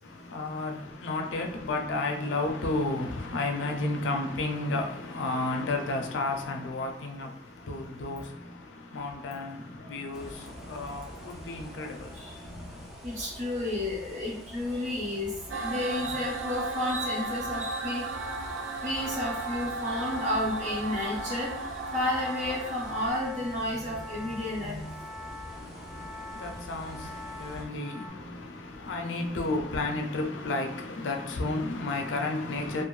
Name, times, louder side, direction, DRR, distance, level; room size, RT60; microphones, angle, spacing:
voice 1, 0.0-12.9 25.5-32.8, left 2 dB, 80° left, 0.4 m, -32 dB
sound 1, 10.1-27.6, equal, ahead, 0.4 m, -46 dB
voice 2, 13.0-18.0 18.8-21.5 21.9-24.9 25.2-25.3 26.9-27.1, left 1 dB, 40° right, 0.9 m, -31 dB
sound 2, 15.5-23.1, right 3 dB, 85° right, 0.3 m, -35 dB
sound 3, 18.1-28.1, left 2 dB, 65° right, 0.8 m, -44 dB
2.5 x 2.1 x 3.1 m
head